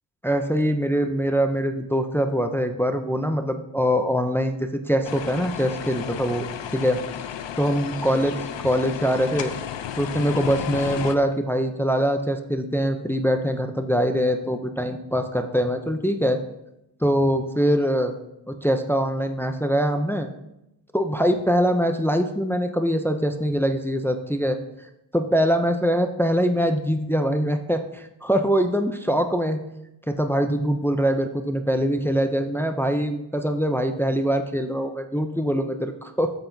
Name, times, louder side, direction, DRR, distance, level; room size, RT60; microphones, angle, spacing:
voice 1, 0.2-6.5 6.7-7.0 7.6-9.5 10.0-16.4 17.0-18.1 18.5-20.3 20.9-24.6 25.1-29.6 30.1-36.3, equal, 5° left, 7 dB, 0.4 m, -23 dB
sound 1, 5.0-11.2, left 9 dB, 75° left, 0.7 m, -33 dB
10.0 x 7.8 x 2.6 m, 0.86 s
wide cardioid pair, 140°, 45 cm